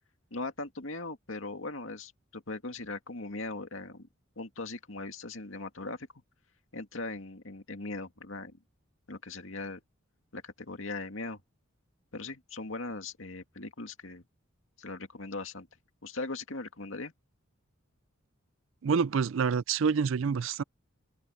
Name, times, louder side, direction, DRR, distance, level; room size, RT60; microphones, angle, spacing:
voice 1, 0.3-4.1 4.4-6.1 6.7-8.6 9.1-9.8 10.3-11.4 12.1-14.2 14.8-15.7 16.0-17.1, left 3 dB, 70° left, 2.3 m, -39 dB
voice 2, 18.8-20.6, right 6 dB, 65° right, 0.4 m, -27 dB
open air
head